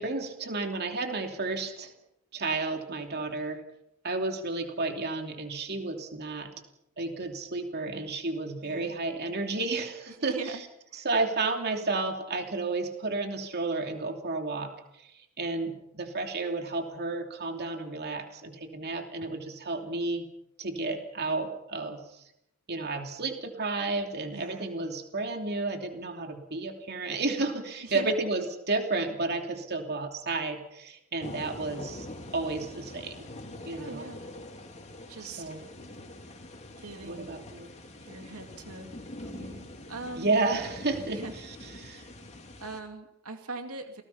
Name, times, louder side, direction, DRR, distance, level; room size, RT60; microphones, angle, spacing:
voice 1, 0.0-1.9 2.3-3.6 4.0-6.5 7.0-10.3 11.0-14.7 15.0-15.1 15.4-20.3 20.6-22.2 22.7-33.3 33.6-34.0 35.2-35.6 37.0-37.7 40.2-41.2 41.8-42.1, right 3 dB, 50° right, 4 dB, 2.9 m, -32 dB
voice 2, 8.6-9.0 10.1-10.6 10.9-11.1 24.3-24.8 27.8-28.1 33.8-34.3 35.1-35.5 36.8-37.4 38.0-38.9 39.2-40.3 41.1-41.3 42.3-44.0, right 2 dB, 85° right, 5 dB, 2.5 m, -42 dB
sound 1, 31.2-42.8, left 1 dB, 30° left, 3.1 m, -44 dB
28.5 x 19.0 x 5.7 m, 0.82 s
head